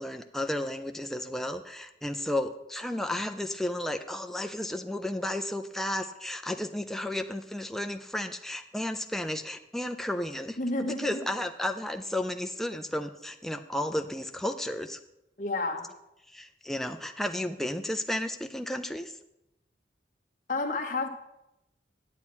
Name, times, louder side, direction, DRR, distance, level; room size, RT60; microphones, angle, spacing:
voice 1, 0.0-15.0 16.3-19.1, left 1 dB, ahead, 6 dB, 0.4 m, -33 dB
voice 2, 10.6-11.3 15.4-15.9 20.5-21.1, left 2 dB, 45° left, 3 dB, 1.1 m, -30 dB
9.9 x 8.4 x 4.4 m, 0.88 s
head